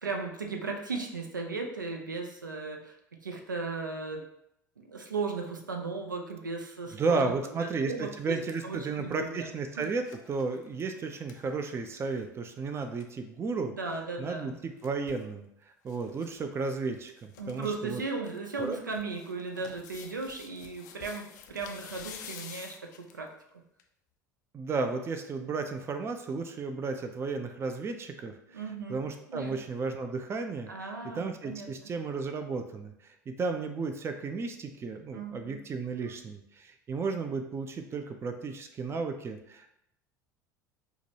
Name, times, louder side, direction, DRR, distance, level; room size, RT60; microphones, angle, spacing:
voice 1, 0.0-3.0 3.2-4.2 4.8-7.3 7.6-8.4 8.6-9.5 9.8-9.9 13.7-14.6 17.4-23.3 23.5-23.6 28.5-29.0 29.3-29.5 30.7-31.7 35.1-35.6, right 4 dB, 90° right, 2 dB, 0.4 m, -36 dB
voice 2, 6.9-13.7 14.2-15.5 15.8-18.0 18.6-18.8 24.5-28.6 28.9-30.7 31.2-39.7, right 4 dB, 25° right, 6 dB, 0.4 m, -33 dB
sound 1, 7.4-7.6 8.0-12.3 12.6-12.7 12.8-13.1 14.4-15.3 15.9-16.4 16.6-16.7 17.1-17.7 18.1-23.3 23.8-23.9, left 7 dB, 70° left, 0.4 m, -50 dB
4.5 x 2.2 x 2.8 m, 0.77 s
figure-of-eight pair, 70°, 10 cm